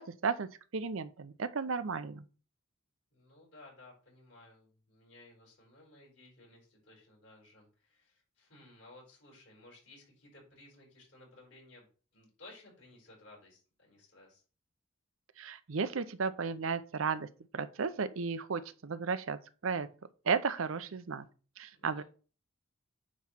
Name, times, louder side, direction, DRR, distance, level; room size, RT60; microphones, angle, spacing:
voice 1, 0.0-2.2 15.4-17.3 17.5-19.9 20.2-21.3 21.6-22.0, right 5 dB, 75° right, 0.6 m, -34 dB
voice 2, 3.1-11.9 12.1-14.4 21.7-22.0, left 2 dB, 55° left, 4.6 m, -57 dB
9.4 x 3.2 x 5.7 m
head